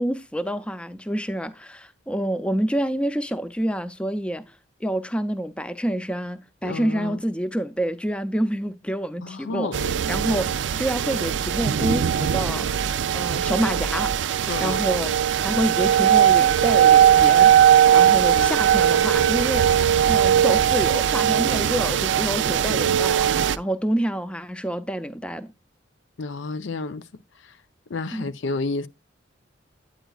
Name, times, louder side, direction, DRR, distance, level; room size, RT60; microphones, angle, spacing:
voice 1, 0.0-4.4 4.8-9.7 10.1-12.7 13.1-14.1 14.6-15.1 15.4-17.5 17.9-19.7 20.0-25.5 28.1-28.3, equal, 5° left, 0.5 m, -27 dB
voice 2, 6.6-7.2 9.2-10.0 14.5-14.8 18.0-18.5 26.2-27.1 27.4-27.6 27.9-28.9, left 3 dB, 85° left, 0.6 m, -31 dB
Thunder Rain Siren.L, 9.7-23.6, right 9 dB, 75° right, 0.4 m, -19 dB
9.1 x 8.9 x 2.3 m
head